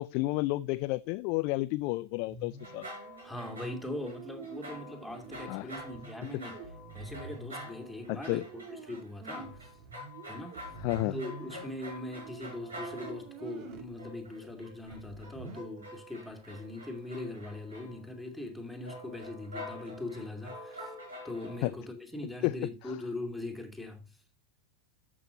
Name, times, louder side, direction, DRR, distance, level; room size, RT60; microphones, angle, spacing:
voice 1, 0.0-2.9 5.5-5.7 8.1-8.4 10.8-11.2 21.6-21.7 22.4-22.5, left 20 dB, 45° left, 0.3 m, -31 dB
sound 1, 2.3-13.9 14.4-14.5 14.8-15.6, right 5 dB, 40° right, 1.7 m, -47 dB
sound 2, 2.6-4.2 4.4-13.4 14.0-18.2 18.8-21.7, left 1 dB, 70° right, 5.8 m, -47 dB
voice 2, 3.2-6.6 6.9-8.4 8.7-9.7 10.3-10.6 11.1-20.9 21.2-24.2, left 2 dB, ahead, 2.4 m, -41 dB
14.0 x 6.2 x 2.6 m
figure-of-eight pair, 90°, 0 cm